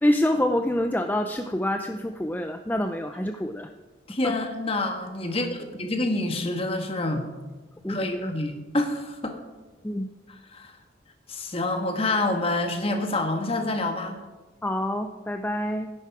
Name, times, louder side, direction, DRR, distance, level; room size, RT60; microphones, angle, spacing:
voice 1, 0.0-3.7 4.2-4.4 7.8-8.3 9.8-10.1 14.6-15.9, left 1 dB, 10° left, 6 dB, 0.5 m, -26 dB
voice 2, 4.1-7.2 7.9-9.4 10.5-10.7 11.3-14.2, left 2 dB, 30° left, 4 dB, 1.6 m, -27 dB
16.5 x 10.5 x 4.8 m, 1.2 s
head